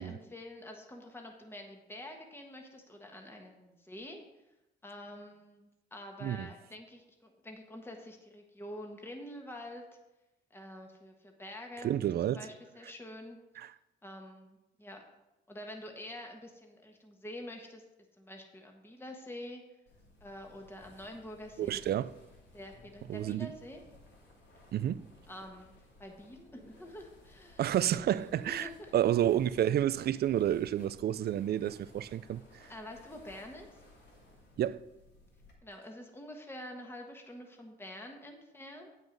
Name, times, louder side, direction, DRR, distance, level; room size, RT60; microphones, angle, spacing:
voice 1, 0.0-4.2 4.8-9.8 10.5-11.9 12.2-13.4 14.0-15.0 15.5-17.8 18.2-19.6 20.2-21.7 22.5-23.8 25.3-25.7 26.0-27.7 28.5-28.9 32.7-33.7 35.6-38.9, left 1 dB, 10° left, 1.4 m, -47 dB
voice 2, 11.8-12.4 13.6-13.7 21.6-22.1 23.1-23.5 24.7-25.0 27.6-32.4 34.6-34.8, right 11 dB, 55° right, 0.4 m, -30 dB
sound 1, 19.9-35.5, left 2 dB, 60° left, 2.7 m, -58 dB
8.8 x 6.1 x 5.3 m
cardioid pair, 90°, 20 cm